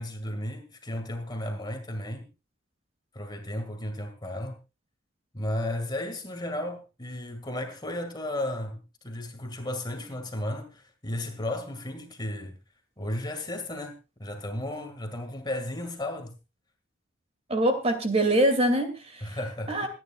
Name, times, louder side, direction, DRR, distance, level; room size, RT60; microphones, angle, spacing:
voice 1, 0.0-2.3 3.1-4.6 5.3-12.6 13.0-13.9 14.2-16.3 19.2-19.9, left 1 dB, 20° left, 2.1 m, -34 dB
voice 2, 17.5-19.3 19.7-19.9, right 1 dB, 30° right, 2.5 m, -24 dB
27.5 x 9.9 x 2.4 m
head